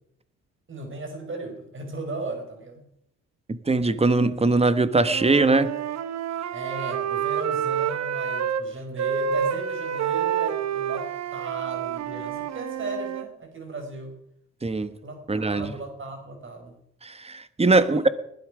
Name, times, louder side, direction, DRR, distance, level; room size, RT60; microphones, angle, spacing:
voice 1, 0.7-2.9 6.5-14.2 15.0-16.8 17.6-18.1, right 2 dB, 40° right, 5.1 m, -36 dB
voice 2, 3.5-5.8 14.6-14.9 15.3-15.7 17.0-18.1, right 3 dB, 20° right, 1.4 m, -21 dB
Wind instrument woodwind instrument, 5.0-8.6 9.0-13.3, right 8 dB, 60° right, 1.2 m, -28 dB
20.5 x 12.0 x 5.0 m
cardioid pair, 90°, 30 cm